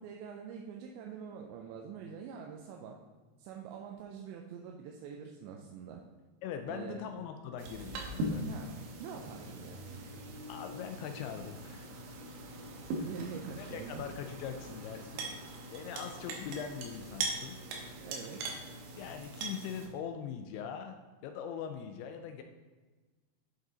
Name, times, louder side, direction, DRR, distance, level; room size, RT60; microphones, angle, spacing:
voice 1, 0.0-3.0 3.4-6.0 6.7-7.2 8.5-8.7 9.0-9.8 13.0-14.1 18.0-18.4, right 7 dB, 90° right, 1 dB, 2.9 m, -45 dB
voice 2, 6.4-8.6 10.5-12.0 12.8-13.0 13.6-17.6 19.0-22.4, left 8 dB, 85° left, 6 dB, 2.3 m, -42 dB
sound 1, 7.6-19.9, right 2 dB, 70° right, 2.5 m, -41 dB
8.4 x 5.3 x 3.9 m, 1.3 s
omnidirectional pair, 5.0 m